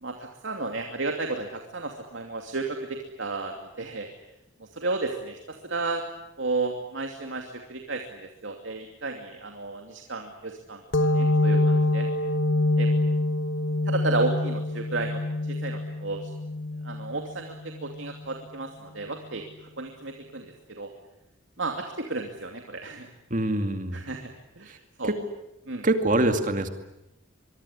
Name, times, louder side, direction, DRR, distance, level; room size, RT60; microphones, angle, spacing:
voice 1, 0.0-4.1 4.6-6.0 6.4-12.1 12.8-12.9 13.9-16.2 16.8-17.5 17.8-19.4 19.8-20.9 21.6-23.1 23.9-24.3 24.6-25.1 25.7-25.8, right 3 dB, 75° right, 3 dB, 2.7 m, -33 dB
sound 1, 10.9-18.2, left 2 dB, 75° left, 1.3 m, -26 dB
voice 2, 23.3-24.0 24.7-24.8 25.0-25.2 25.8-26.7, right 1 dB, 40° right, 7 dB, 2.4 m, -24 dB
24.5 x 23.5 x 9.8 m, 0.90 s
head